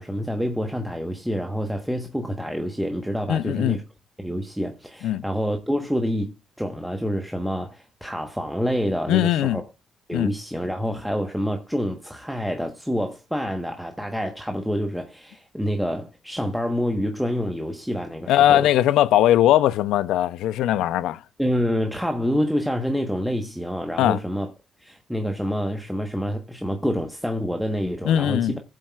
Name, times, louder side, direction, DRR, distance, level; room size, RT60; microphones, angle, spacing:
voice 1, 0.0-3.8 4.2-9.6 10.1-18.7 21.4-24.5 24.8-28.6, equal, ahead, 1.2 m, -27 dB
voice 2, 3.3-3.8 5.0-5.2 9.1-9.6 10.1-10.3 18.3-21.2 24.0-24.2 28.0-28.5, left 12 dB, 85° left, 0.5 m, -20 dB
19.5 x 7.6 x 2.4 m
cardioid pair, 90°, 0 cm